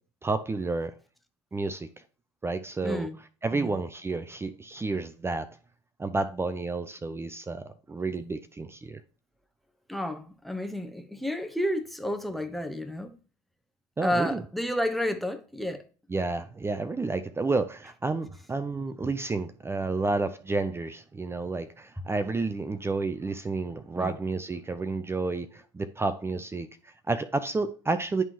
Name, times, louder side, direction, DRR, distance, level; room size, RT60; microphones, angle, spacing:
voice 1, 0.2-0.9 1.5-1.9 2.4-3.1 3.4-5.6 6.0-9.0 14.0-14.4 16.1-28.2, right 3 dB, 15° right, 0.5 m, -30 dB
voice 2, 2.8-3.2 3.5-3.8 9.9-13.1 14.0-15.8 24.0-24.2, equal, ahead, 1.0 m, -31 dB
10.5 x 3.6 x 3.0 m
hypercardioid pair, 75°, 14 cm